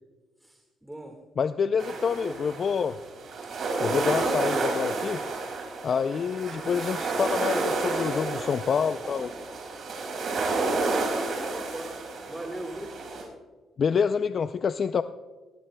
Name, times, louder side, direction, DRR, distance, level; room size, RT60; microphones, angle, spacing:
voice 1, 0.4-1.2 2.2-2.3 6.5-6.7 10.6-12.0 12.2-12.9, right 1 dB, 5° right, 2 dB, 1.8 m, -38 dB
voice 2, 1.4-3.0 3.8-5.2 5.8-9.3 13.8-15.0, left 6 dB, 50° left, 10 dB, 0.4 m, -27 dB
sound 1, 1.8-13.2, right 3 dB, 55° right, 5.5 m, -30 dB
19.0 x 19.0 x 2.2 m, 1.3 s
cardioid pair, 90°, 0 cm